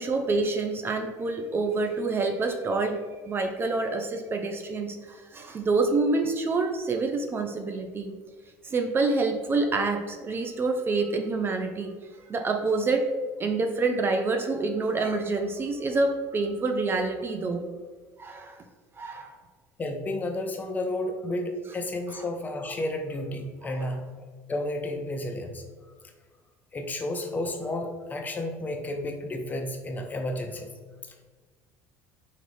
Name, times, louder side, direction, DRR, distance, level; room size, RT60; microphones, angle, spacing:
voice 1, 0.0-3.0 3.3-8.2 8.6-11.9 12.3-13.1 13.4-17.6 18.2-18.6 19.0-19.4 23.6-23.9, right 3 dB, 30° right, 5 dB, 0.4 m, -27 dB
voice 2, 19.8-24.2 24.5-25.6 26.7-30.7 31.0-31.1, left 1 dB, 20° left, 4 dB, 0.6 m, -32 dB
4.0 x 3.1 x 3.0 m, 1.4 s
supercardioid pair, 110°, 8 cm